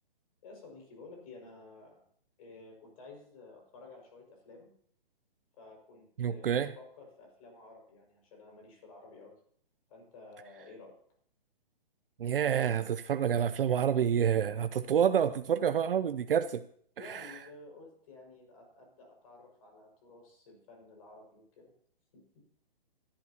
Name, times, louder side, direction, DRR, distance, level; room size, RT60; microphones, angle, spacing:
voice 1, 0.4-2.0 2.4-4.7 5.6-9.3 9.9-11.0 17.0-21.7 22.1-22.2, left 3 dB, 40° left, 0 dB, 5.7 m, -52 dB
voice 2, 6.2-6.7 12.2-16.6 17.0-17.3, right 8 dB, 70° right, 11 dB, 0.7 m, -28 dB
19.5 x 11.5 x 2.9 m, 0.62 s
hypercardioid pair, 160°, 29 cm